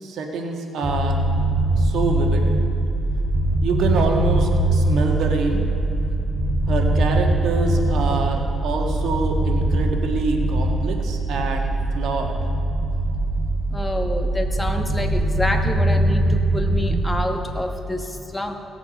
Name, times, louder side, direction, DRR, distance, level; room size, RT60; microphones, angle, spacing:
voice 1, 0.0-1.2 1.7-2.5 3.6-5.6 6.7-12.4, right 3 dB, 75° right, 2 dB, 1.6 m, -26 dB
sound 1, 0.8-17.2, right 1 dB, 40° right, 2.7 m, -22 dB
voice 2, 13.7-18.5, left 1 dB, 10° left, 4 dB, 1.3 m, -28 dB
18.0 x 7.3 x 5.3 m, 2.9 s
cardioid pair, 90°, 0 cm